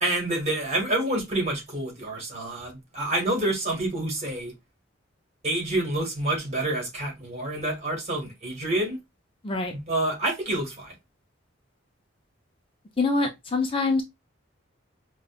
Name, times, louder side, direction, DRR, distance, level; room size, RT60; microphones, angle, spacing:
voice 1, 0.0-4.5 5.4-9.0 9.9-10.9, right 1 dB, 35° right, 1.6 m, -28 dB
voice 2, 13.0-14.0, left 3 dB, 25° left, 0.5 m, -24 dB
5.1 x 2.2 x 2.4 m
head